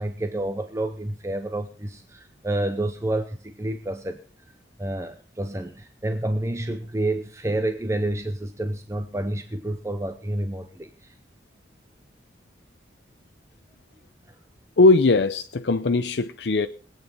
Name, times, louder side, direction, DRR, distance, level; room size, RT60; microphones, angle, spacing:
voice 1, 0.0-4.2 4.8-11.2, right 1 dB, 15° right, 0.7 m, -29 dB
voice 2, 14.8-16.7, left 3 dB, 75° left, 0.6 m, -19 dB
22.0 x 9.0 x 4.1 m
head